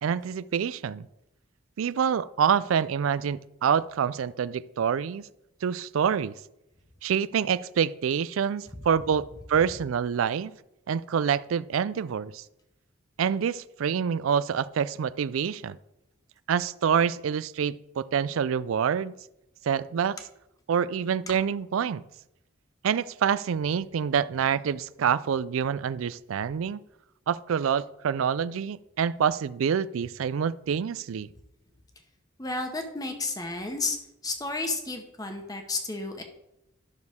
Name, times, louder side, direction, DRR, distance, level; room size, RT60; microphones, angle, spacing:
voice 1, 0.0-1.1 1.8-5.3 5.6-6.3 7.0-10.5 10.9-12.4 13.2-15.8 16.5-19.1 19.6-20.2 20.7-22.0 22.8-26.8 27.3-31.3, right 7 dB, 90° right, 17 dB, 0.4 m, -26 dB
voice 2, 32.4-34.0 34.2-36.2, left 3 dB, 20° left, 5 dB, 1.1 m, -32 dB
12.0 x 6.2 x 3.6 m, 0.87 s
head